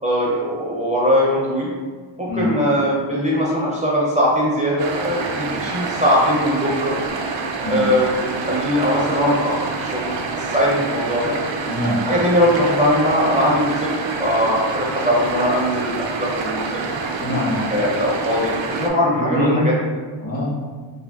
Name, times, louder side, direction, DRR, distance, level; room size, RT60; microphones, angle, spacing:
voice 1, 0.0-1.7 2.2-6.9 7.7-10.1 10.4-11.4 12.0-16.9 17.7-19.7, equal, 15° right, -7 dB, 0.5 m, -20 dB
sound 1, 4.8-18.9, right 4 dB, 65° right, 0.5 m, -27 dB
voice 2, 11.7-12.0 17.2-17.7 19.1-19.7 20.2-20.5, left 1 dB, 45° left, -4 dB, 0.9 m, -23 dB
3.4 x 2.2 x 2.3 m, 1.5 s
cardioid pair, 90°, 49 cm